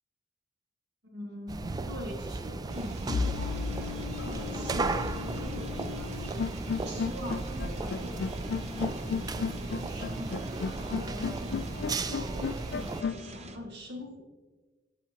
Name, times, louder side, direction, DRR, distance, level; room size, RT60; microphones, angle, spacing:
voice 1, 1.1-6.5 6.8-14.2, left 1 dB, 65° right, 0 dB, 1.8 m, -43 dB
sound 1, 1.5-13.0, right 3 dB, 20° right, 0.3 m, -35 dB
sound 2, 2.7-13.6, right 2 dB, 40° right, 0.7 m, -47 dB
sound 3, 3.1-13.3, left 5 dB, 60° left, 0.3 m, -34 dB
8.2 x 7.8 x 3.0 m, 1.3 s
head